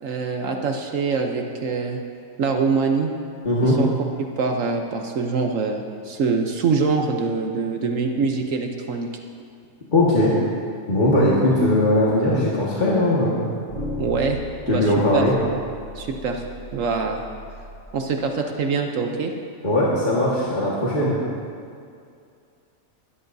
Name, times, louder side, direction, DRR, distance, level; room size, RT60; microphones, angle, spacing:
voice 1, 0.0-2.0 2.4-3.1 3.6-3.9 4.4-9.1 14.0-14.4 14.7-15.2 15.9-16.4 16.7-17.2 17.9-19.3, right 4 dB, 70° right, 3 dB, 1.1 m, -24 dB
voice 2, 3.5-3.8 9.9-10.3 10.9-13.5 14.7-15.3 19.6-21.2, left 1 dB, 35° left, -6 dB, 1.8 m, -19 dB
sound 1, 13.7-17.8, left 1 dB, 55° right, 2.1 m, -36 dB
21.0 x 12.5 x 2.7 m, 2.3 s
omnidirectional pair, 1.4 m